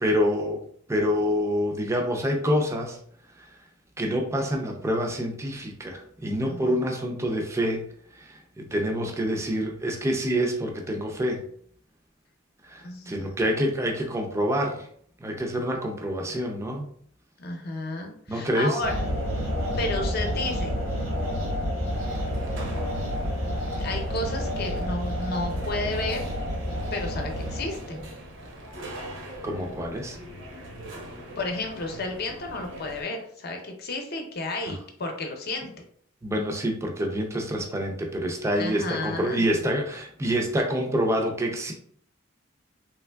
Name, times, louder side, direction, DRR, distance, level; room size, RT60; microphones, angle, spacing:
voice 1, 0.0-0.6 0.9-3.0 3.4-3.6 4.0-7.9 8.1-11.5 12.6-14.9 15.2-16.9 18.3-18.8 29.4-30.2 34.6-34.8 36.2-41.7, equal, 15° right, 1 dB, 0.5 m, -27 dB
voice 2, 12.8-13.3 17.4-18.9 19.8-20.7 23.8-26.3 26.9-28.1 31.4-35.7 38.6-39.4, left 2 dB, 50° left, 3 dB, 0.7 m, -32 dB
sound 1, 18.8-28.0, equal, 85° right, 1.2 m, -29 dB
sound 2, 21.9-33.0, right 1 dB, 65° right, 0.8 m, -42 dB
3.4 x 3.1 x 2.2 m, 0.62 s
head